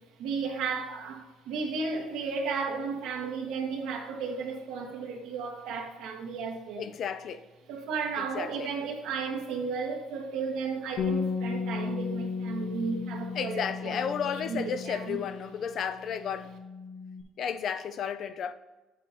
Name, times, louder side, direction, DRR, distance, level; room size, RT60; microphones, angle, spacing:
voice 1, 0.2-6.9 7.7-15.2, right 5 dB, 85° right, 1.4 m, -34 dB
voice 2, 6.8-7.5 8.2-8.7 13.3-16.6 17.4-18.5, left 7 dB, 50° left, 0.4 m, -33 dB
Bass guitar, 11.0-15.7 15.9-17.2, left 5 dB, 75° left, 1.0 m, -35 dB
9.1 x 7.4 x 2.7 m
cardioid pair, 140°, 0 cm